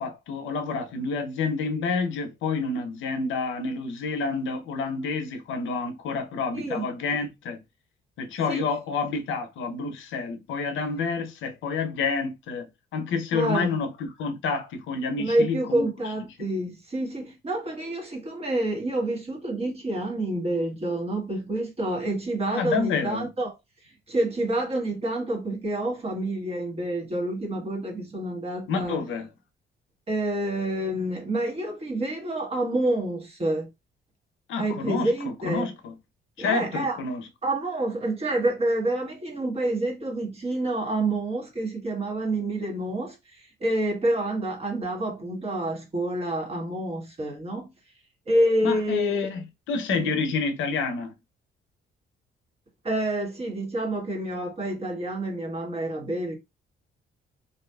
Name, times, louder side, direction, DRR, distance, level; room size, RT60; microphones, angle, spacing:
voice 1, 0.0-7.6 8.2-12.7 12.9-15.9 22.5-23.3 28.7-29.3 34.5-35.1 35.4-36.0 36.4-37.2 48.6-51.1, left 4 dB, 80° left, 0.7 m, -29 dB
voice 2, 6.5-6.8 8.5-8.6 13.3-13.7 15.2-23.5 24.1-29.0 30.1-33.7 34.6-35.7 36.4-37.0 37.4-47.7 48.3-49.3 49.9-50.2 52.8-56.3, right 1 dB, 30° right, 1.2 m, -28 dB
2.7 x 2.4 x 2.2 m
cardioid pair, 90°, 20 cm